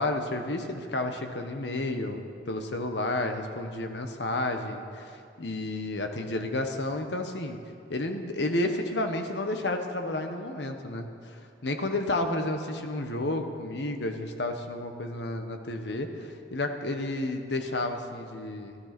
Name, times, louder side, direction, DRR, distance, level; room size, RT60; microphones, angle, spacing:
voice 1, 0.0-5.1 5.4-7.6 7.9-18.8, left 2 dB, 70° left, 5 dB, 1.2 m, -31 dB
14.0 x 13.0 x 6.0 m, 2.4 s
head